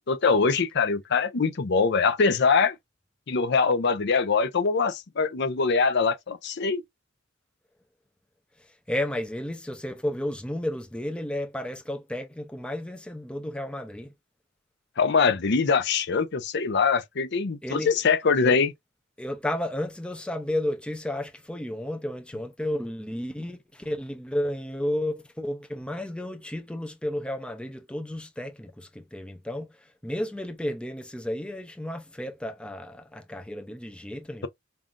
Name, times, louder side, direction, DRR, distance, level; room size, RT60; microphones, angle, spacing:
voice 1, 0.1-2.8 3.3-6.8 15.0-18.7, left 5 dB, 60° left, 0.6 m, -23 dB
voice 2, 8.9-14.1 17.6-17.9 18.4-18.6 19.2-29.7 30.0-34.5, left 1 dB, 5° left, 0.5 m, -32 dB
5.5 x 2.5 x 2.4 m
head